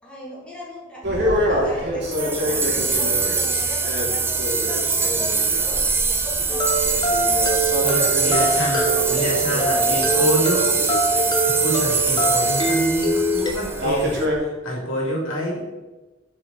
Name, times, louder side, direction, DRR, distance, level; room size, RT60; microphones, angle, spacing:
voice 1, 0.0-6.9 7.4-10.6, left 1 dB, 5° left, -8 dB, 2.6 m, -38 dB
sound 1, 1.0-14.4, equal, 60° right, 1.7 m, -28 dB
sound 2, 2.1-14.1, right 4 dB, 10° right, 0.5 m, -23 dB
sound 3, 6.5-13.5, right 2 dB, 20° left, 1.1 m, -23 dB
voice 2, 7.8-10.6 11.4-15.8, equal, 85° left, -3 dB, 2.3 m, -27 dB
7.7 x 5.0 x 4.1 m, 1.1 s
head